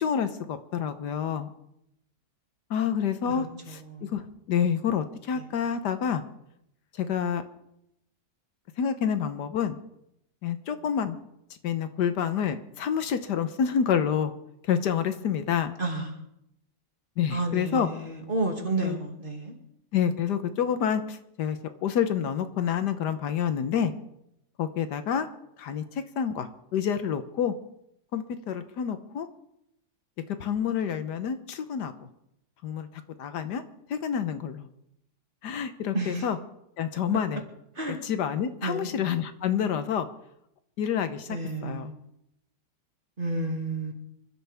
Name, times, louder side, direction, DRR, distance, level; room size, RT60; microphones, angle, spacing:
voice 1, 0.0-1.5 2.7-6.2 6.9-7.4 8.8-9.8 10.4-11.2 11.6-14.3 14.6-15.7 17.2-17.9 18.8-19.0 19.9-23.9 24.6-25.3 25.6-27.5 28.1-29.3 30.4-32.1 32.6-32.9 33.2-33.6 33.9-34.7 35.4-36.4 36.8-37.4 37.9-40.1 40.8-41.9, left 8 dB, 75° left, 10 dB, 1.5 m, -28 dB
voice 2, 3.4-4.1 5.3-5.4 15.8-16.1 17.3-19.6 35.9-36.3 37.8-38.0 38.6-38.9 41.3-42.0 43.2-43.9, right 2 dB, 30° right, 2 dB, 2.4 m, -31 dB
26.5 x 12.5 x 3.5 m, 0.79 s
omnidirectional pair, 1.8 m